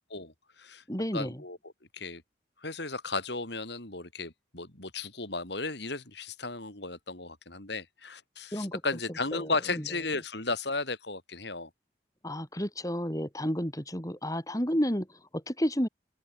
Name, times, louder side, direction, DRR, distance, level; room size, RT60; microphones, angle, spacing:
voice 1, 0.1-0.8 1.1-1.6 1.9-2.2 2.6-11.7, left 3 dB, 60° left, 4.5 m, -35 dB
voice 2, 0.9-1.4 8.5-8.8 9.3-9.8 12.2-15.9, equal, 20° left, 5.0 m, -31 dB
open air
head